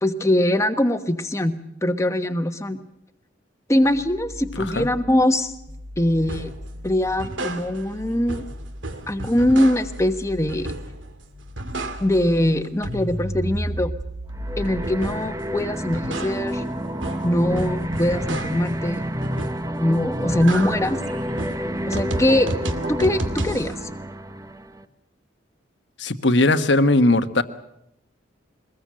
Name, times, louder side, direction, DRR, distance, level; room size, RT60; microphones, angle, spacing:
voice 1, 0.0-1.5 1.8-2.8 3.7-5.5 6.0-6.5 6.8-8.4 9.1-10.7 12.0-13.9 14.6-16.6 17.2-19.0 19.8-21.0 21.9-22.5 22.9-23.7, left 1 dB, 15° left, 8 dB, 1.2 m, -22 dB
sound 1, 3.8-14.0, left 1 dB, 70° right, 5.4 m, -40 dB
sound 2, 6.3-6.6 7.0-8.0 8.3-10.1 10.5-11.1 11.4-12.4 12.6-15.4 15.7-18.8 19.2-19.8 20.1-23.7, right 1 dB, 85° right, 2.3 m, -31 dB
sound 3, 14.3-24.9, equal, 20° right, 1.0 m, -29 dB
voice 2, 26.0-27.4, left 2 dB, 70° left, 10 dB, 1.3 m, -18 dB
23.0 x 20.5 x 7.6 m, 0.81 s
head